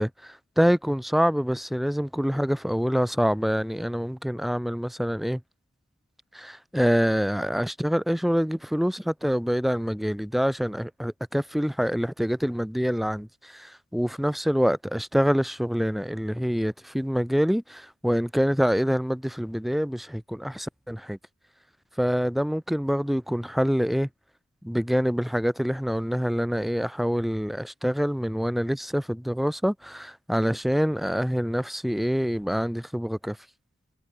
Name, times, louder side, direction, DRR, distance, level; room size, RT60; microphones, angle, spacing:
voice 1, 0.0-5.4 6.3-21.2 22.0-24.1 24.6-33.4, equal, ahead, 0.3 m, -26 dB
head